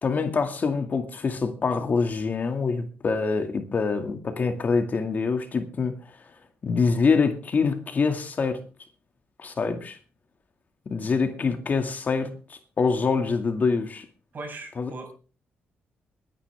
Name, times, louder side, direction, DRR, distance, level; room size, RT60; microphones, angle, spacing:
voice 1, 0.0-6.0 6.6-8.6 9.4-10.0 10.9-14.1 14.8-14.9, left 4 dB, 45° left, 2.2 m, -25 dB
voice 2, 14.3-15.1, right 2 dB, 50° right, 6.0 m, -38 dB
21.5 x 10.5 x 3.5 m
cardioid pair, 85°, 4 cm